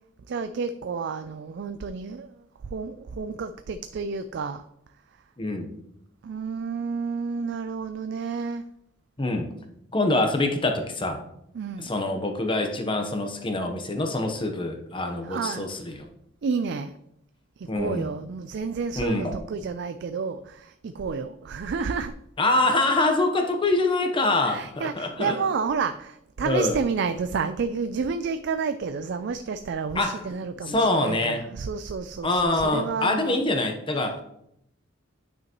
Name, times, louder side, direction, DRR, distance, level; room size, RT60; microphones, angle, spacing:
voice 1, 0.3-4.6 6.2-8.6 11.5-11.9 13.1-13.2 15.2-15.7 16.4-16.9 17.6-22.1 24.4-33.4, right 5 dB, 60° right, 10 dB, 0.4 m, -30 dB
voice 2, 5.4-5.7 9.2-9.5 9.9-11.2 11.8-15.9 17.7-18.1 19.0-19.4 22.4-25.3 26.4-26.8 29.9-30.2 30.7-31.4 32.2-34.2, left 2 dB, 25° left, 5 dB, 0.9 m, -25 dB
9.4 x 5.9 x 3.0 m, 0.77 s
head